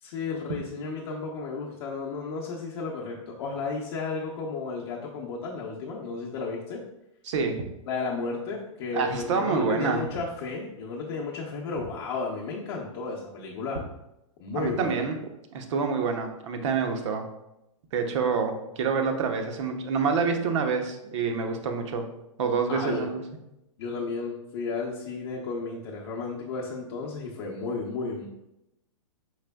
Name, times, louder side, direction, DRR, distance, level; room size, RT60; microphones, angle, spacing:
voice 1, 0.0-6.8 7.9-13.8 14.4-15.1 22.7-23.1 23.8-28.3, left 4 dB, 50° left, -3 dB, 0.7 m, -33 dB
voice 2, 7.2-7.6 8.9-10.0 14.5-15.2 15.5-17.2 17.9-22.1 22.4-23.2, right 5 dB, 60° right, 5 dB, 0.7 m, -27 dB
4.9 x 3.3 x 2.2 m, 0.87 s
hypercardioid pair, 135°, 18 cm